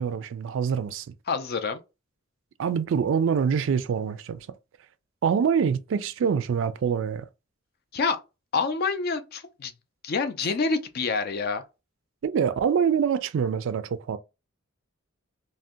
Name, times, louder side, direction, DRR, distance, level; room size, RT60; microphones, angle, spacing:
voice 1, 0.0-1.1 2.6-4.5 5.2-7.3 12.2-14.2, right 7 dB, 60° right, 0.3 m, -25 dB
voice 2, 1.3-1.8 7.9-8.2 8.5-9.7 10.0-11.6, left 4 dB, 50° left, 0.4 m, -27 dB
2.6 x 2.1 x 3.5 m
head